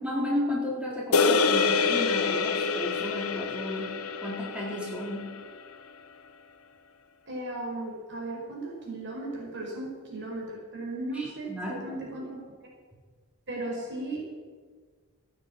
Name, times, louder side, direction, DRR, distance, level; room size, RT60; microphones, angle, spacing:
voice 1, 0.0-5.3 11.1-12.0, left 1 dB, 5° right, -4 dB, 4.2 m, -33 dB
sound 1, 1.1-5.6, left 5 dB, 80° left, 1.2 m, -26 dB
voice 2, 7.3-12.4 13.5-14.2, right 2 dB, 55° right, -2 dB, 5.3 m, -36 dB
15.0 x 9.8 x 8.7 m, 1.5 s
head